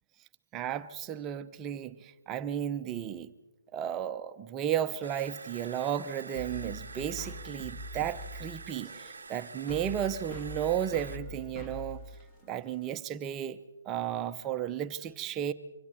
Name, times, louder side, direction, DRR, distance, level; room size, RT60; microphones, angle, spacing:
voice 1, 0.5-3.3 3.7-12.0 12.5-13.6 13.9-15.5, right 10 dB, 20° right, 0.8 m, -34 dB
sound 1, 5.0-11.2, right 4 dB, 70° right, 0.7 m, -47 dB
sound 2, 6.3-13.0, left 1 dB, 25° left, 2.8 m, -44 dB
26.0 x 25.0 x 4.4 m
figure-of-eight pair, 135°, 0 cm